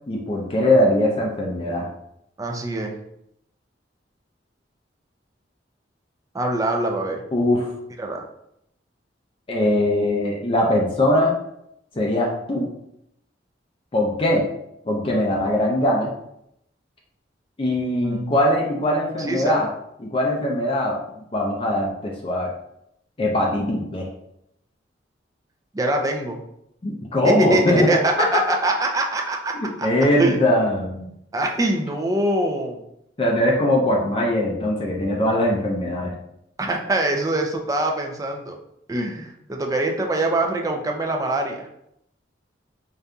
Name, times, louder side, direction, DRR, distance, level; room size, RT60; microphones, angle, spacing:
voice 1, 0.1-1.9 7.3-7.7 9.5-11.3 12.0-12.7 13.9-14.4 14.9-16.1 17.6-19.7 20.0-21.0 21.3-22.5 23.2-24.1 26.8-28.3 29.5-31.1 33.2-36.1, left 1 dB, 30° left, -1 dB, 0.5 m, -21 dB
voice 2, 2.4-2.9 6.3-7.2 8.0-8.2 18.0-18.4 19.2-19.6 25.7-26.4 27.2-29.9 30.2-30.4 31.3-32.8 36.6-38.6 38.9-41.7, right 2 dB, 20° right, 2 dB, 0.5 m, -24 dB
5.0 x 2.7 x 2.3 m, 0.78 s
head